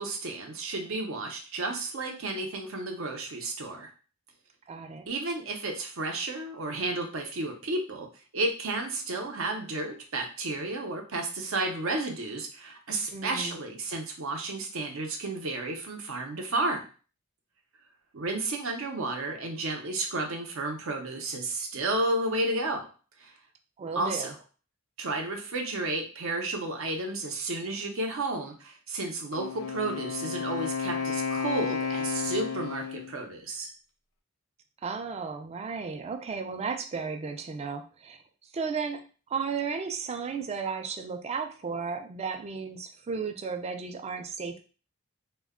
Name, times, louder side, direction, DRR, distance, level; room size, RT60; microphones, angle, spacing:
voice 1, 0.0-3.9 5.1-8.1 8.3-16.9 18.1-22.9 23.2-23.3 24.0-24.3 25.0-33.7, right 2 dB, 70° right, 3 dB, 0.6 m, -32 dB
voice 2, 4.7-5.1 13.1-13.6 23.8-24.3 34.8-38.2 38.5-44.6, right 5 dB, 30° right, 7 dB, 0.3 m, -34 dB
Wind instrument woodwind instrument, 29.3-33.2, left 6 dB, 85° left, 0.5 m, -32 dB
2.2 x 2.1 x 3.5 m, 0.37 s
head